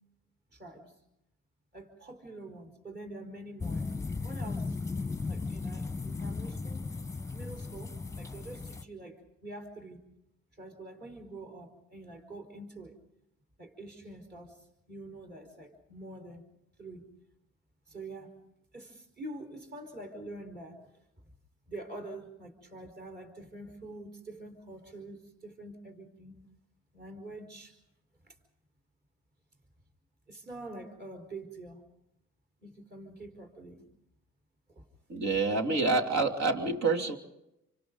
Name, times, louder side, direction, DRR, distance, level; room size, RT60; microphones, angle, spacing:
voice 1, 0.5-0.9 1.7-3.9 4.2-4.8 5.3-10.0 10.5-13.0 13.6-16.4 16.8-17.1 17.9-18.3 18.7-20.9 21.7-26.4 26.9-27.8 28.2-28.4 30.3-31.8 32.6-33.9 34.7-34.8, right 2 dB, 35° right, 3 dB, 4.7 m, -46 dB
sound 1, 3.6-8.8, left 4 dB, 10° left, 1.1 m, -36 dB
voice 2, 35.1-37.2, right 3 dB, 65° right, 4 dB, 3.0 m, -27 dB
28.0 x 25.5 x 4.0 m, 0.85 s
cardioid pair, 90°, 30 cm